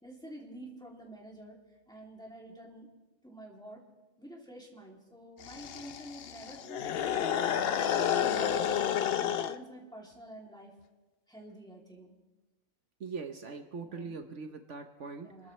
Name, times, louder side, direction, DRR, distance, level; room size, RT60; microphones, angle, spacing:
voice 1, 0.0-1.6 1.9-2.9 3.2-3.8 4.2-7.8 8.1-8.9 9.2-10.7 11.3-12.1 13.8-14.2 15.2-15.5, right 1 dB, 5° left, -3 dB, 2.9 m, -49 dB
sound 1, 5.4-9.6, left 9 dB, 55° left, 0.8 m, -30 dB
voice 2, 13.0-15.5, right 4 dB, 70° right, 5 dB, 1.3 m, -42 dB
28.5 x 13.5 x 3.3 m, 1.2 s
omnidirectional pair, 1.3 m